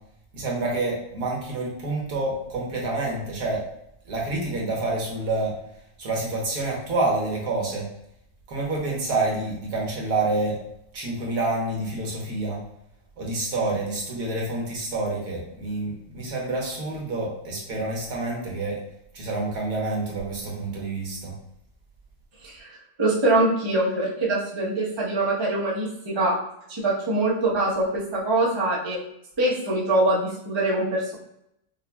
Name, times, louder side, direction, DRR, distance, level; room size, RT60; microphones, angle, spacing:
voice 1, 0.3-3.6 4.0-5.5 6.0-7.9 8.5-10.6 10.9-12.6 13.2-18.8 19.1-21.3, right 2 dB, 70° right, -2 dB, 1.5 m, -28 dB
voice 2, 23.0-26.3 26.7-29.0 29.4-31.1, right 2 dB, 25° right, -5 dB, 0.7 m, -23 dB
5.4 x 2.5 x 2.2 m, 0.79 s
omnidirectional pair, 1.8 m